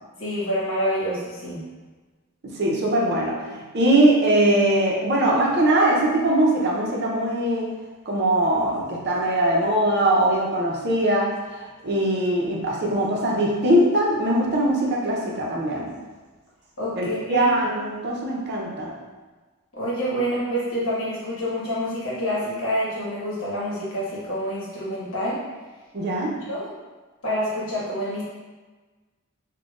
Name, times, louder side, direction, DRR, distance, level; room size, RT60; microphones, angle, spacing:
voice 1, 0.2-1.6 16.8-17.5 19.7-25.4 26.5-26.7 27.2-28.2, equal, 65° left, -7 dB, 1.2 m, -27 dB
voice 2, 2.4-3.4 3.7-7.6 8.1-11.3 11.8-15.9 17.0-18.9 25.9-26.3, right 1 dB, 50° right, -3 dB, 0.6 m, -21 dB
5.1 x 2.3 x 2.4 m, 1.3 s
head